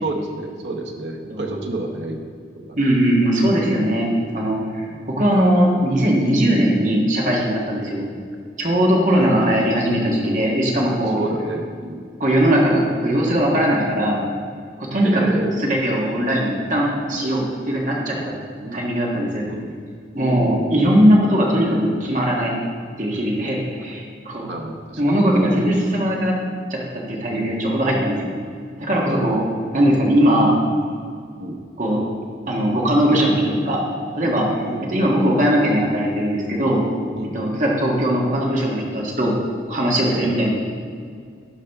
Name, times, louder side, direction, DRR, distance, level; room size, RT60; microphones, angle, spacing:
voice 1, 0.0-2.2 2.6-2.8 4.9-5.1 9.2-9.6 10.9-12.1 14.1-14.3 15.0-15.5 17.2-17.3 18.1-18.3 18.6-18.9 19.5-19.8 20.2-20.7 24.5-25.4 27.3-27.5 27.9-28.3 29.1-29.5 31.4-31.6 34.6-34.8 37.1-37.6 40.1-40.3, right 2 dB, 85° right, 2 dB, 0.9 m, -31 dB
voice 2, 2.8-4.1 4.3-8.0 8.6-11.2 12.2-14.2 14.8-18.4 18.7-19.4 20.1-22.5 23.0-24.5 25.0-26.3 26.7-28.3 28.8-29.4 29.7-30.6 31.8-32.0 32.5-33.8 34.2-34.6 34.9-36.8 37.3-39.4 39.7-40.5, equal, 45° right, -2 dB, 1.4 m, -19 dB
11.5 x 4.8 x 3.5 m, 2.1 s
head